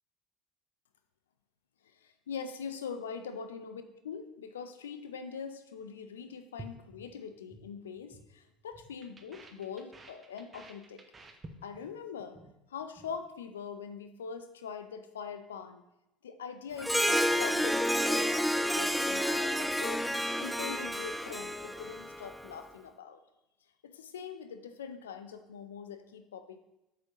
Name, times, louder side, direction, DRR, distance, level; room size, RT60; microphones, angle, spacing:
voice 1, 1.8-11.0 11.6-12.4 12.7-15.8 16.2-18.4 18.7-20.1 20.4-23.2 23.8-26.6, left 6 dB, 80° left, 9 dB, 0.5 m, -43 dB
sound 1, 6.6-7.7 8.0-8.3 8.6-12.0 12.2-12.5 12.8-13.2, right 2 dB, 25° right, 0.9 m, -51 dB
Harp, 16.8-22.5, equal, ahead, 0.4 m, -30 dB
7.9 x 5.6 x 3.0 m, 0.92 s
hypercardioid pair, 65°, 0 cm